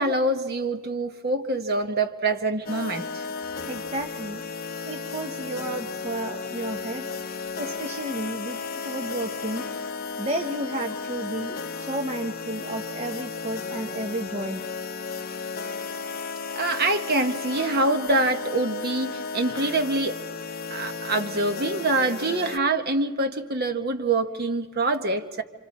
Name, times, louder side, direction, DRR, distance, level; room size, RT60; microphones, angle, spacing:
voice 1, 0.0-3.2 16.5-20.2 20.7-25.4, right 2 dB, 50° right, 6 dB, 1.1 m, -25 dB
sound 1, 2.6-22.6, left 5 dB, 45° left, 0.7 m, -34 dB
voice 2, 3.6-4.4 4.8-7.1 7.6-9.7 10.2-14.6, right 1 dB, 30° right, 3 dB, 0.9 m, -32 dB
28.0 x 26.0 x 4.2 m, 1.3 s
head